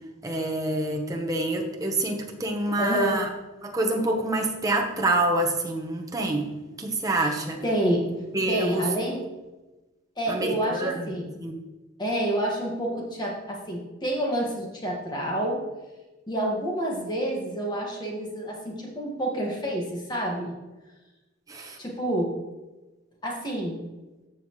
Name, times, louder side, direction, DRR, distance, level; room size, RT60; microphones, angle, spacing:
voice 1, 0.2-3.3 3.6-6.5 6.8-7.6 8.3-8.8 10.3-11.1 11.4-11.6 21.5-21.8, right 2 dB, 20° right, 1 dB, 1.1 m, -27 dB
voice 2, 2.8-3.2 7.2-8.0 8.5-9.2 10.2-11.3 12.0-15.6 16.3-20.5 21.8-22.3 23.2-23.8, right 1 dB, 20° left, -1 dB, 1.8 m, -28 dB
14.0 x 5.8 x 3.2 m, 1.1 s
head